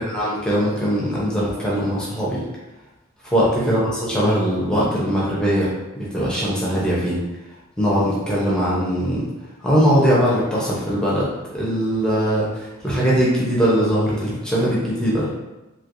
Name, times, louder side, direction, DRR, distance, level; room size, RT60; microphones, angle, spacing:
voice 1, 0.1-2.4 3.3-5.7 6.1-7.2 7.8-9.3 9.6-11.3 11.5-15.3, equal, 5° left, -7 dB, 0.7 m, -20 dB
3.2 x 2.9 x 2.6 m, 1.0 s
head